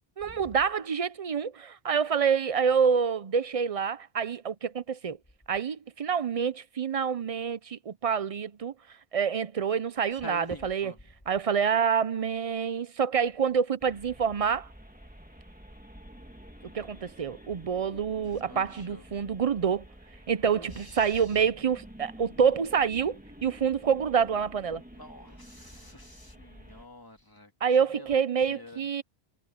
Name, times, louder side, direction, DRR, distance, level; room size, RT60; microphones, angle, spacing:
voice 1, 0.2-5.2 5.5-8.7 9.1-10.9 11.3-14.7 16.7-19.8 20.3-24.8 27.6-29.0, right 7 dB, 45° right, 0.5 m, -27 dB
voice 2, 10.2-11.0 18.2-19.0 20.4-21.5 24.9-27.5 27.9-28.2 28.5-28.8, left 1 dB, 20° left, 2.4 m, -47 dB
sound 1, 13.8-26.9, equal, 10° right, 1.8 m, -50 dB
omnidirectional pair, 1.1 m